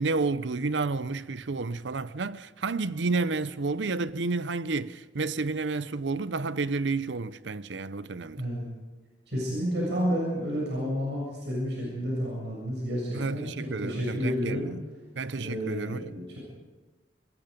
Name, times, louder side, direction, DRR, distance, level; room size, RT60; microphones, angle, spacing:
voice 1, 0.0-8.4 13.1-14.8 15.2-16.1, right 3 dB, 90° right, 0.7 m, -30 dB
voice 2, 8.3-8.6 9.3-14.6 15.4-16.4, equal, 75° right, 7.4 m, -30 dB
25.5 x 21.0 x 5.3 m
head